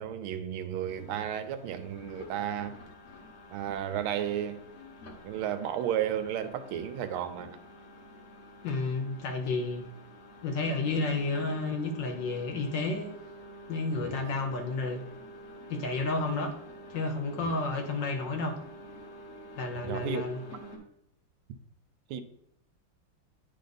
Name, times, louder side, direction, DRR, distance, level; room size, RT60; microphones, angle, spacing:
voice 1, 0.0-2.8 3.5-4.6 5.2-7.6 14.0-14.2 17.4-17.5 19.8-20.2 22.1-22.2, right 10 dB, 80° right, 1.4 m, -33 dB
sound 1, 0.9-20.8, equal, 45° left, 0.9 m, -49 dB
voice 2, 8.6-9.9 10.4-13.1 13.7-15.0 15.7-16.5 16.9-18.6 19.6-20.4, left 3 dB, 70° left, 1.2 m, -31 dB
9.4 x 3.5 x 4.0 m
omnidirectional pair, 2.4 m